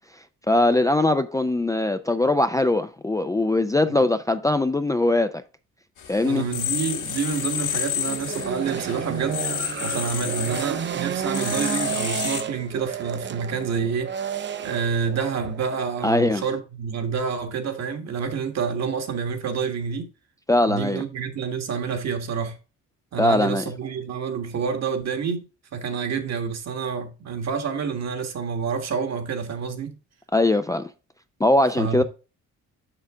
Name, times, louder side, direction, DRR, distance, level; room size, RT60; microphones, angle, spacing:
voice 1, 0.5-5.4 6.1-6.5 16.0-16.4 20.5-21.0 23.2-23.6 30.3-30.9 31.4-32.0, left 2 dB, 10° left, 0.4 m, -21 dB
sound 1, 6.0-12.4, left 9 dB, 90° left, 2.0 m, -31 dB
voice 2, 6.2-9.4 9.8-14.1 14.6-20.1 20.7-22.6 23.1-25.5 25.7-30.0 31.8-32.0, right 6 dB, 60° right, 1.5 m, -28 dB
sound 2, 8.0-16.1, right 7 dB, 40° right, 0.6 m, -31 dB
6.7 x 5.8 x 3.5 m
cardioid pair, 90°, 30 cm